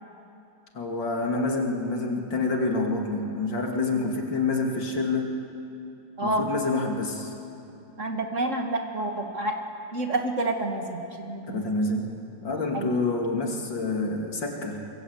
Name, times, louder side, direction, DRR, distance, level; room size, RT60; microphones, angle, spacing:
voice 1, 0.7-5.3 6.2-7.3 11.5-12.1 12.4-14.8, left 3 dB, 70° left, 1 dB, 3.4 m, -27 dB
voice 2, 8.0-9.6 9.9-11.6 12.7-12.9, right 2 dB, 40° right, 4 dB, 1.9 m, -28 dB
25.5 x 22.5 x 8.3 m, 2.7 s
omnidirectional pair, 2.1 m